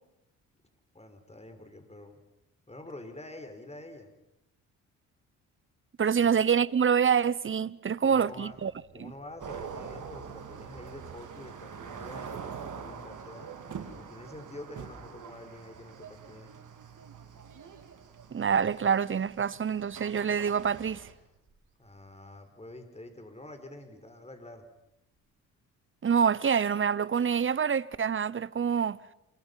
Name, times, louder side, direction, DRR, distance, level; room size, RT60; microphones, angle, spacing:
voice 1, 0.9-2.2 2.7-4.1 6.1-6.4 8.0-8.6 8.9-13.5 13.9-16.5 21.8-24.7, left 1 dB, 15° left, 5.3 m, -47 dB
voice 2, 6.0-8.7 9.0-9.1 18.3-21.1 26.0-29.0, right 7 dB, 35° right, 1.0 m, -26 dB
Motor vehicle (road) / Accelerating revving vroom, 8.2-23.1 23.4-23.8 24.3-24.4 24.7-24.8 25.1-25.2 26.5-26.6, right 5 dB, 90° right, 5.3 m, -59 dB
sound 1, 9.4-21.1, right 6 dB, 55° right, 3.6 m, -44 dB
28.0 x 25.0 x 5.7 m
supercardioid pair, 55°, 36 cm